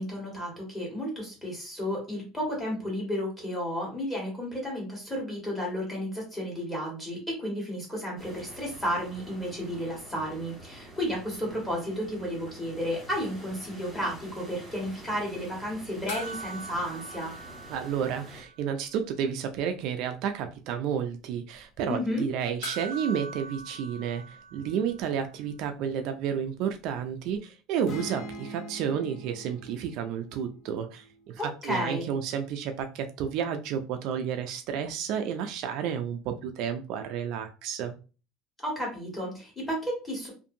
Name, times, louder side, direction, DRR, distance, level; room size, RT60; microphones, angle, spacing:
voice 1, 0.0-17.3 21.9-22.3 31.4-32.1 38.6-40.3, equal, 10° left, -3 dB, 1.4 m, -32 dB
sound 1, 8.2-18.4, right 1 dB, 5° right, 1.4 m, -47 dB
sound 2, 16.1-18.7 19.0-19.1 22.6-25.2 27.4-27.5, right 2 dB, 90° left, 0.9 m, -42 dB
voice 2, 17.7-31.4 31.6-37.9, right 8 dB, 60° right, 6 dB, 0.3 m, -31 dB
sound 3, 27.9-31.6, right 1 dB, 35° left, 0.6 m, -43 dB
2.6 x 2.5 x 2.5 m, 0.33 s
cardioid pair, 150°, 0 cm